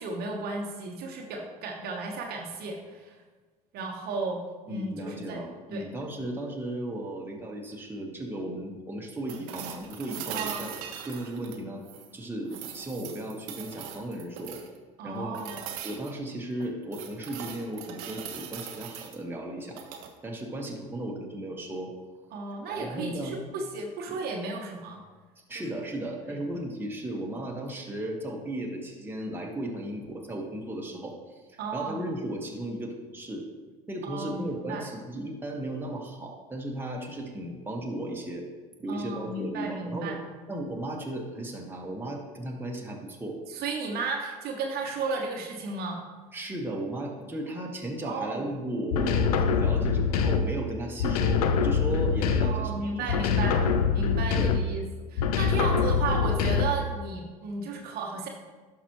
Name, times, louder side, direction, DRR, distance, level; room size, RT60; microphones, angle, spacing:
voice 1, 0.0-3.2 3.7-4.4 4.7-5.4 5.7-5.8 10.3-10.6 15.0-15.6 22.3-25.0 25.5-25.7 26.2-26.4 31.6-32.1 34.0-34.8 38.9-40.2 43.5-46.1 48.0-48.5 52.4-53.6 53.9-54.8 55.1-58.3, right 3 dB, 55° right, 1 dB, 1.2 m, -34 dB
voice 2, 4.7-10.7 11.1-11.8 12.1-14.6 15.0-15.4 15.8-19.8 20.2-21.9 22.6-23.4 25.5-33.5 33.9-38.5 38.8-40.2 40.5-43.4 46.3-53.7 54.3-54.6, right 1 dB, 10° right, -1 dB, 1.6 m, -35 dB
sound 1, 9.3-12.1 12.5-14.8 15.3-16.1 16.6-19.2 19.7-20.1 22.2-22.3, right 8 dB, 70° right, 0.9 m, -40 dB
sound 2, 48.9-50.6 51.0-52.7 53.1-54.8 55.2-56.9, left 5 dB, 80° left, 0.6 m, -25 dB
11.0 x 6.0 x 3.1 m, 1.4 s
hypercardioid pair, 70°, 19 cm